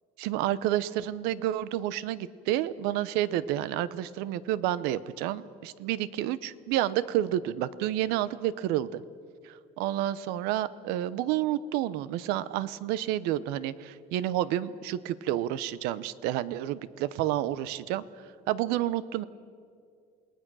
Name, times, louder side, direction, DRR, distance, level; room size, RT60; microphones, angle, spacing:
voice 1, 0.2-9.0 9.4-18.0 18.5-19.2, right 13 dB, 75° right, 17 dB, 0.8 m, -30 dB
28.5 x 19.0 x 6.2 m, 2.3 s
cardioid pair, 175°, 16 cm